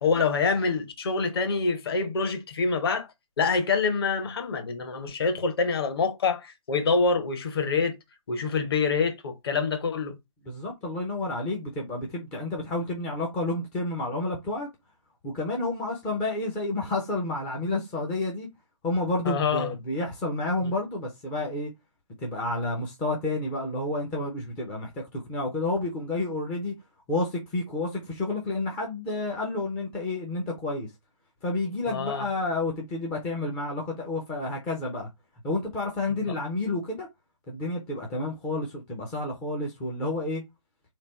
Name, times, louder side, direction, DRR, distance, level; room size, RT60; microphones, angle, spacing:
voice 1, 0.0-3.1 3.4-8.0 8.3-10.2 19.2-19.7 20.6-20.7 31.9-32.3 36.3-36.4, left 4 dB, 45° left, 1.1 m, -26 dB
voice 2, 10.5-14.7 15.2-18.5 18.8-21.7 22.2-26.7 27.1-30.9 31.4-35.1 35.4-37.1 37.5-40.4, left 2 dB, 5° left, 0.4 m, -30 dB
3.5 x 3.3 x 4.2 m
figure-of-eight pair, 150°, 17 cm